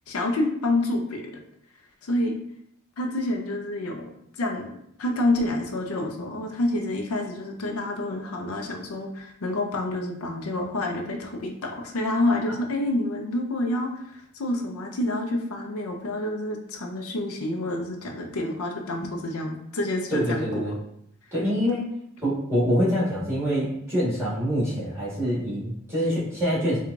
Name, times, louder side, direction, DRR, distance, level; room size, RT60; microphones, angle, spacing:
voice 1, 0.1-1.4 2.0-2.4 3.0-4.1 4.4-20.8, left 1 dB, 80° left, 3 dB, 0.5 m, -28 dB
voice 2, 20.1-20.7 21.3-21.9 22.2-26.8, equal, 15° right, -8 dB, 1.4 m, -25 dB
4.5 x 2.3 x 2.5 m, 0.75 s
head